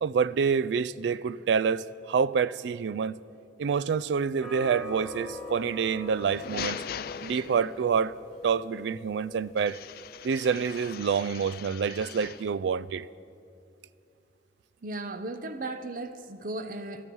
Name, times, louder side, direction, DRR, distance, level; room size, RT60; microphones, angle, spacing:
voice 1, 0.0-3.1 3.6-6.8 7.2-8.1 8.4-9.8 10.2-13.1, right 6 dB, 70° right, 0.3 m, -27 dB
sound 1, 4.4-10.4, left 1 dB, 5° left, 1.7 m, -43 dB
sound 2, 6.1-8.0 9.6-12.6, left 8 dB, 55° left, 0.4 m, -40 dB
voice 2, 14.8-17.0, right 2 dB, 50° right, 0.8 m, -36 dB
17.0 x 12.5 x 4.7 m
head